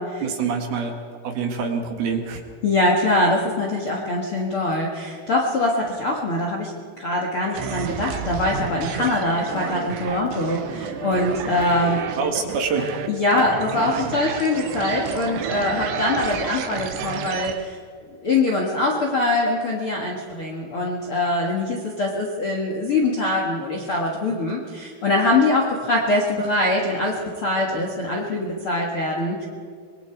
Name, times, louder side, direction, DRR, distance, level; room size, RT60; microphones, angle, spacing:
voice 1, 0.2-0.9 1.2-2.4 12.2-12.9, right 5 dB, 65° right, 3 dB, 3.4 m, -25 dB
voice 2, 2.6-6.7 7.0-12.0 13.1-17.7 18.2-29.5, left 2 dB, 50° left, -2 dB, 1.7 m, -23 dB
sound 1, 7.5-17.6, right 8 dB, 85° right, 3.4 m, -31 dB
25.5 x 22.0 x 4.6 m, 2.1 s
omnidirectional pair, 5.1 m